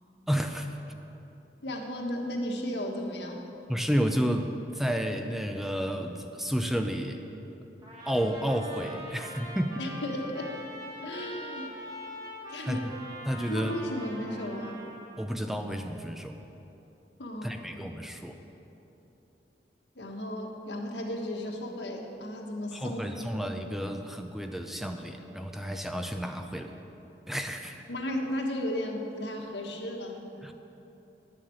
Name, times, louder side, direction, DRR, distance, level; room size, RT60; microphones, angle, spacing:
voice 1, 0.3-0.8 3.7-7.2 8.0-9.8 12.6-12.8 13.3-13.8 15.2-16.4 17.4-18.4 22.7-26.8 27.3-27.8 30.4-30.5, equal, ahead, 5 dB, 0.5 m, -31 dB
voice 2, 1.6-3.4 9.8-10.5 11.0-11.7 12.5-12.9 13.5-14.8 17.2-17.5 19.9-23.2 27.9-30.3, left 1 dB, 80° left, 1 dB, 1.5 m, -34 dB
Trumpet, 7.8-15.3, equal, 25° right, 1.9 m, -43 dB
10.5 x 7.5 x 7.8 m, 2.9 s
head